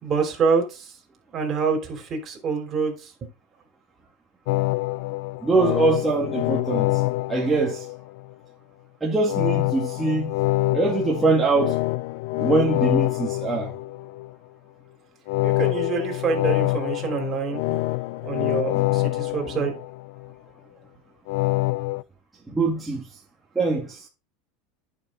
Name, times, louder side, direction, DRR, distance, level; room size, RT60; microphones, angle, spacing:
voice 1, 0.0-0.9 1.3-3.1 15.4-17.6 18.2-19.7, right 5 dB, 30° right, 3.3 m, -26 dB
sound 1, 4.5-8.3 9.3-14.3 15.3-20.3 21.3-22.0, left 19 dB, 65° left, 0.3 m, -26 dB
voice 2, 5.4-7.0 7.3-7.9 9.0-10.4 10.7-11.8 12.4-13.7 17.7-17.8 18.7-19.0 22.5-23.1 23.6-24.1, right 3 dB, 10° right, 1.8 m, -23 dB
10.5 x 6.4 x 3.7 m
supercardioid pair, 135°, 0 cm